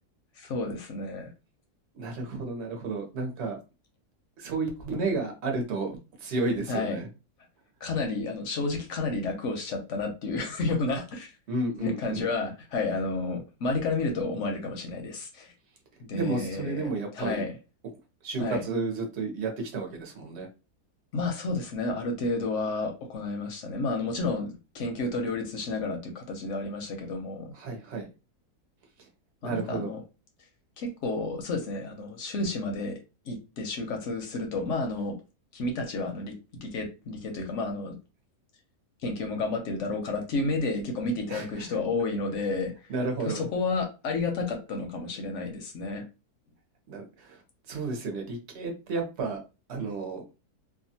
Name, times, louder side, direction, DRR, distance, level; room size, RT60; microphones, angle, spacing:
voice 1, 0.4-1.3 6.7-7.0 7.8-11.3 11.7-15.5 16.0-16.9 17.1-17.5 18.4-18.6 21.1-27.5 29.4-30.0 30.8-33.0 33.3-35.2 35.5-38.0 39.0-42.7 43.2-46.0, left 3 dB, 60° left, 3 dB, 0.8 m, -31 dB
voice 2, 1.9-3.6 4.4-7.1 11.5-12.3 16.1-17.4 18.2-20.5 27.5-28.1 29.4-29.9 41.3-41.7 42.9-43.5 46.9-47.4 47.7-49.4 49.7-50.2, right 3 dB, 55° right, 2 dB, 0.9 m, -32 dB
2.7 x 2.3 x 2.7 m, 0.29 s
omnidirectional pair, 1.7 m